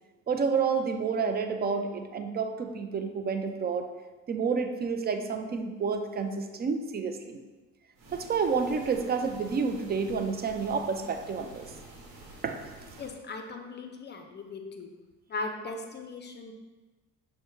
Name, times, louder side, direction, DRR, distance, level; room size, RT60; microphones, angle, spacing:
voice 1, 0.3-3.8 4.3-7.4 8.1-11.7 12.4-12.7, right 5 dB, 30° right, 7 dB, 0.4 m, -29 dB
sound 1, 7.9-13.2, right 2 dB, 70° right, 1.0 m, -49 dB
voice 2, 13.0-14.9 15.3-16.5, left 3 dB, 30° left, 5 dB, 0.5 m, -38 dB
5.9 x 2.2 x 3.1 m, 1.2 s
supercardioid pair, 70°, 33 cm